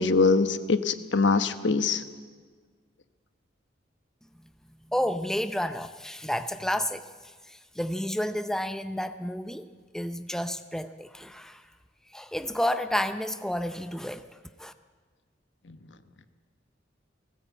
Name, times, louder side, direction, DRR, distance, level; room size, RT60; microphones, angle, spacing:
voice 1, 0.0-2.0 15.7-15.8, left 4 dB, 75° left, 10 dB, 1.1 m, -23 dB
voice 2, 4.9-7.1 7.5-9.7 9.9-11.6 12.1-14.2 14.6-14.7, left 1 dB, 5° left, 10 dB, 0.6 m, -30 dB
19.5 x 16.5 x 8.5 m, 1.5 s
head